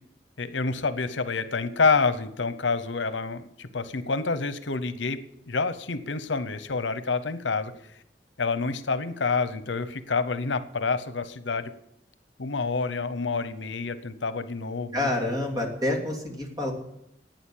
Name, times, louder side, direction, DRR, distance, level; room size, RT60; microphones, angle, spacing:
voice 1, 0.4-5.2 5.5-7.7 8.4-11.7 12.4-15.1, left 4 dB, 80° left, 12 dB, 0.9 m, -28 dB
voice 2, 14.9-16.7, left 1 dB, 20° right, 1 dB, 2.9 m, -28 dB
12.0 x 9.2 x 8.7 m, 0.78 s
head